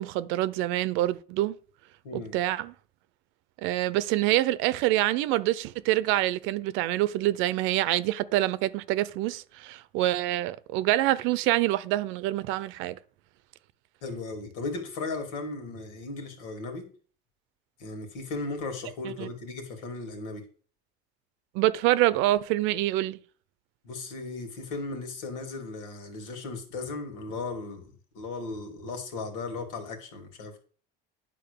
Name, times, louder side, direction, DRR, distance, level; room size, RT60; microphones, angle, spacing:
voice 1, 0.0-1.6 2.1-2.7 3.6-13.0 19.0-19.3 21.5-23.2, right 15 dB, 75° right, 0.7 m, -26 dB
voice 2, 2.0-2.4 14.0-16.9 17.8-20.4 23.8-30.6, left 3 dB, 90° left, 2.7 m, -36 dB
10.0 x 3.8 x 6.9 m
cardioid pair, 120°, 20 cm